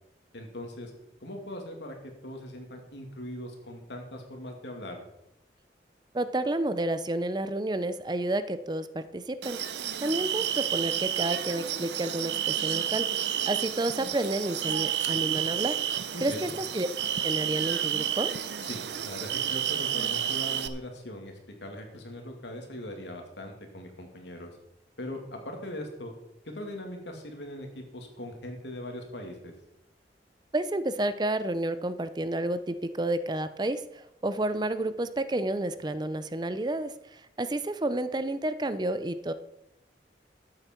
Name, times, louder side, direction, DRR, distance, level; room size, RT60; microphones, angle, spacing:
voice 1, 0.3-0.9 1.2-1.9 2.2-5.0 16.1-16.5 18.6-24.5 25.0-26.1 26.5-29.5, left 1 dB, 85° left, 3 dB, 2.4 m, -40 dB
voice 2, 6.1-9.6 10.0-13.1 13.5-15.8 16.2-16.9 17.2-18.3 30.5-39.3, right 1 dB, 25° right, 13 dB, 0.5 m, -30 dB
sound 1, 9.4-20.7, right 10 dB, 75° right, 0.7 m, -30 dB
13.0 x 8.9 x 4.5 m, 0.84 s
head